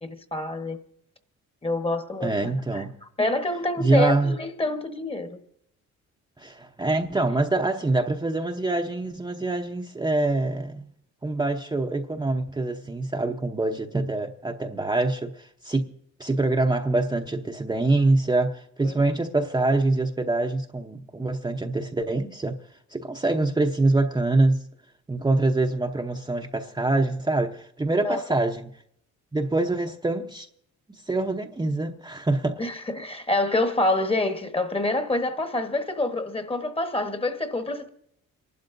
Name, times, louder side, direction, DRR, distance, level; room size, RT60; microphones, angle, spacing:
voice 1, 0.0-0.8 1.6-2.9 3.2-5.4 18.8-19.0 28.0-28.2 32.6-37.9, left 2 dB, 20° left, 1.2 m, -27 dB
voice 2, 2.2-2.9 3.8-4.3 6.4-10.8 11.2-15.9 16.2-22.6 22.9-24.7 25.1-28.7 29.3-30.5 31.1-32.6, right 2 dB, 15° right, 0.8 m, -25 dB
29.5 x 12.0 x 2.6 m
cardioid pair, 90°, 30 cm